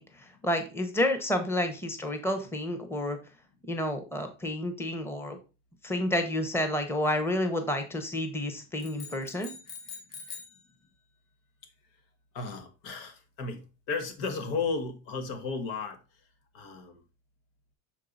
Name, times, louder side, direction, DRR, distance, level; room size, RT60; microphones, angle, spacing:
voice 1, 0.0-3.2 3.7-5.4 5.8-9.5, left 1 dB, 5° left, 0.8 m, -30 dB
sound 1, 8.8-10.6, left 5 dB, 60° left, 2.1 m, -44 dB
voice 2, 12.3-16.0 16.5-17.0, left 4 dB, 75° left, 1.5 m, -34 dB
6.5 x 4.6 x 3.9 m
cardioid pair, 145°, 36 cm